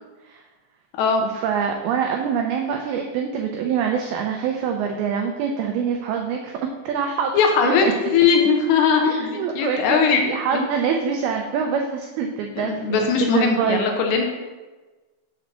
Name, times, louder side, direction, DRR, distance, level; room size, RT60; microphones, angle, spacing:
voice 1, 1.2-6.5 6.9-7.3 7.6-7.9 9.0-13.9, right 7 dB, 90° right, 3 dB, 2.1 m, -25 dB
voice 2, 7.3-7.9 8.1-10.2 10.5-10.6 12.6-14.2, left 6 dB, 80° left, 2 dB, 2.8 m, -19 dB
7.0 x 4.3 x 6.1 m, 1.2 s
omnidirectional pair, 5.1 m